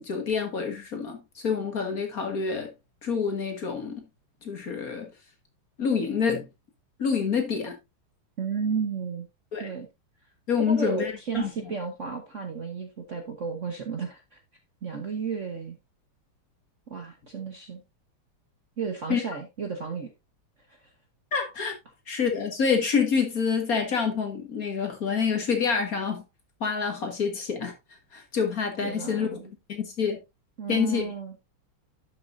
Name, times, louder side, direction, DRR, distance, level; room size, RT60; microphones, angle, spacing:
voice 1, 0.0-2.7 3.0-4.1 4.4-5.1 5.8-6.5 7.0-7.8 9.5-9.7 10.5-11.5 19.1-19.2 21.3-21.8 22.1-26.2 26.6-27.7 28.1-30.2 30.7-31.1, left 6 dB, 45° left, 1.9 m, -27 dB
voice 2, 8.4-9.3 9.6-9.9 10.6-14.4 14.8-15.8 16.9-17.8 18.8-20.1 28.8-29.5 30.6-31.4, right 5 dB, 45° right, 1.1 m, -33 dB
11.5 x 6.5 x 2.6 m
omnidirectional pair, 2.4 m